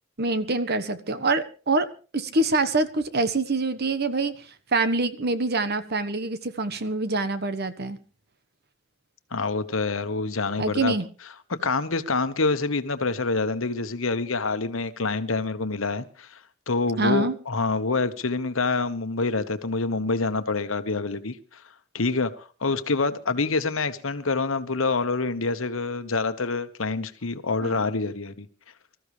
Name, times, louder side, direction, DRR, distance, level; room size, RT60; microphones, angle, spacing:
voice 1, 0.2-4.3 4.7-8.0 10.6-11.0 17.0-17.3 27.6-27.8, right 3 dB, 50° right, 1.2 m, -25 dB
voice 2, 9.3-10.9 11.6-16.4 16.7-21.6 21.9-28.5, left 3 dB, 75° left, 1.2 m, -26 dB
25.0 x 14.0 x 3.3 m
head